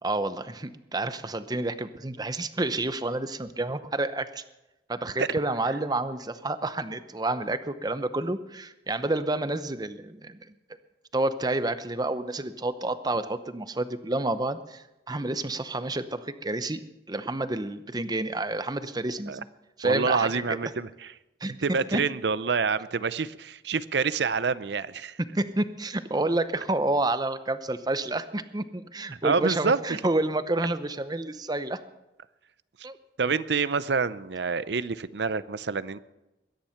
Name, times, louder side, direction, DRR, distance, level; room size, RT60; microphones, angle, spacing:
voice 1, 0.0-4.4 4.9-10.5 11.1-16.8 17.1-19.5 19.8-20.6 21.4-22.0 25.3-31.8 32.8-33.0, right 2 dB, 20° right, 11 dB, 0.8 m, -29 dB
voice 2, 19.8-20.9 21.6-25.2 29.2-29.8 33.2-36.0, right 5 dB, 65° right, 15 dB, 0.6 m, -27 dB
22.0 x 10.5 x 5.8 m, 0.97 s
head